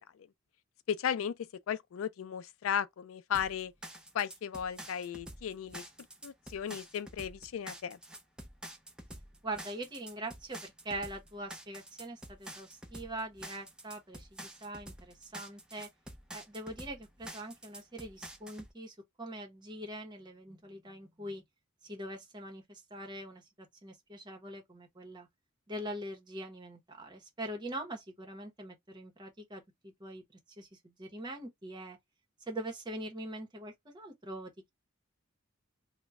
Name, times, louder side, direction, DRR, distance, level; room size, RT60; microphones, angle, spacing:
voice 1, 0.9-1.4 1.7-3.7 4.1-5.8 6.2-8.0, left 8 dB, 90° left, 0.4 m, -35 dB
sound 1, 3.3-18.7, right 1 dB, 5° right, 0.5 m, -48 dB
voice 2, 9.4-15.9 16.3-21.4 21.8-25.3 25.7-30.2 30.6-32.0 32.5-34.7, right 1 dB, 20° right, 0.9 m, -43 dB
3.0 x 2.2 x 3.4 m
head